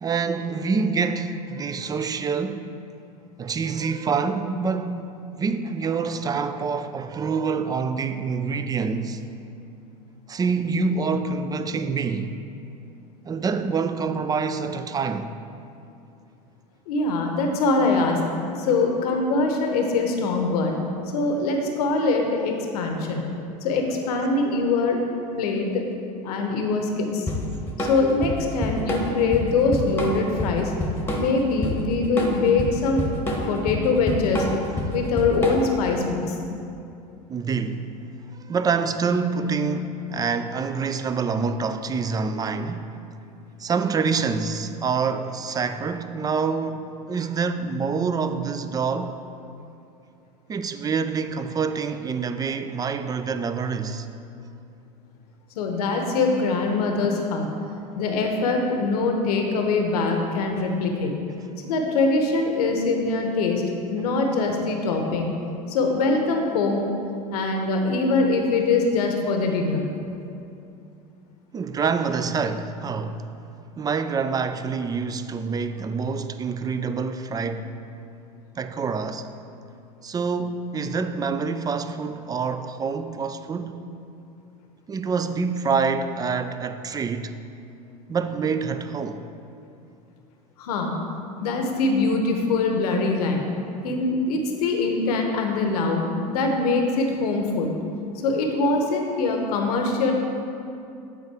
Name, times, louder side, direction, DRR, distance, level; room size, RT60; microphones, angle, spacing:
voice 1, 0.0-2.8 3.4-5.1 5.4-9.2 10.3-12.4 13.3-15.3 34.8-35.0 37.3-38.0 38.5-43.0 43.6-49.2 50.5-54.1 71.5-73.2 73.8-77.8 78.6-79.3 80.0-83.9 84.9-87.4 88.1-89.3, right 5 dB, 20° right, 0.3 m, -26 dB
voice 2, 16.9-18.2 18.6-20.7 21.1-23.3 23.6-25.0 25.4-25.9 26.2-27.2 27.8-30.7 31.2-33.2 33.5-34.5 34.9-36.4 55.6-57.5 57.9-61.1 61.6-63.6 63.9-65.3 65.7-66.8 67.3-69.8 90.6-90.9 91.4-93.4 93.8-96.0 96.3-97.8 98.2-100.1, left 3 dB, 75° left, 0.8 m, -23 dB
Drum kit / Drum, 27.3-35.9, left 1 dB, 10° left, 1.1 m, -27 dB
8.1 x 3.8 x 4.7 m
hypercardioid pair, 85°, 20 cm